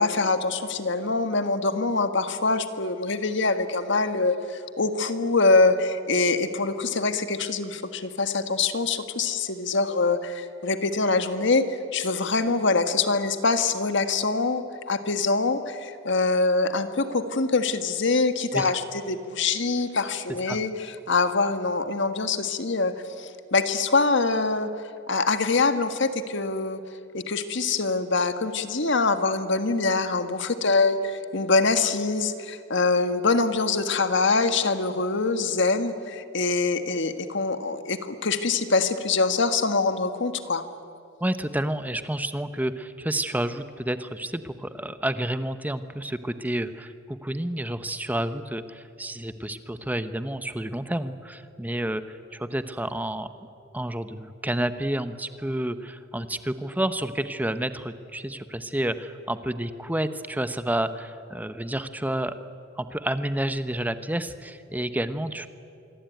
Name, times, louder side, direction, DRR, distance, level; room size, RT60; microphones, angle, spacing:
voice 1, 0.0-24.7 25.1-26.8 27.1-40.6, left 3 dB, 60° left, 9 dB, 1.6 m, -24 dB
voice 2, 41.2-53.3 53.7-62.4 62.8-65.5, right 1 dB, 10° right, 11 dB, 0.9 m, -30 dB
26.0 x 23.0 x 9.3 m, 2.5 s
head